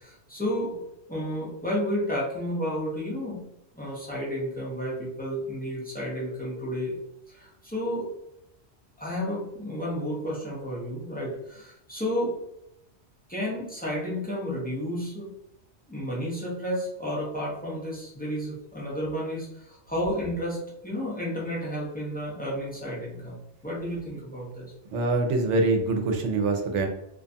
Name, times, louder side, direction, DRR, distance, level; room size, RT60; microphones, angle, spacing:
voice 1, 0.0-3.4 3.7-7.0 7.3-8.1 9.0-12.4 13.3-15.3 15.9-24.7, equal, 10° left, -5 dB, 0.5 m, -32 dB
voice 2, 24.9-26.9, right 3 dB, 85° right, 3 dB, 0.9 m, -24 dB
2.5 x 2.2 x 2.6 m, 0.80 s
omnidirectional pair, 1.2 m